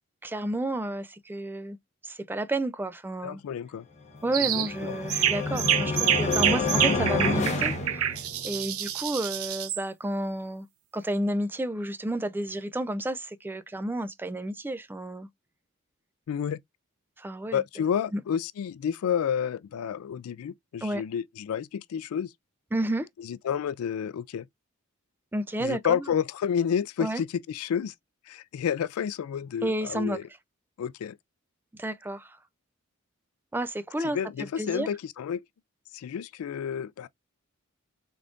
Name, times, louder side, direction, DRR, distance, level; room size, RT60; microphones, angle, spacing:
voice 1, 0.2-1.8 2.0-3.4 4.2-10.7 10.9-15.3 17.2-17.6 18.1-18.2 20.8-21.0 22.7-23.1 25.3-26.0 27.0-27.2 29.6-30.2 31.7-32.4 33.5-34.2 34.6-34.9, right 1 dB, 10° right, 0.3 m, -31 dB
voice 2, 3.2-3.9 4.4-5.0 16.3-16.6 17.5-22.3 23.2-24.5 25.6-27.9 28.3-30.2 30.8-31.2 34.0-35.4 35.9-37.1, left 8 dB, 80° left, 0.3 m, -30 dB
sound 1, 4.3-8.6, left 3 dB, 35° left, 0.8 m, -29 dB
sound 2, 4.3-4.7 5.1-9.8, right 11 dB, 80° right, 0.6 m, -27 dB
3.7 x 3.5 x 2.4 m
head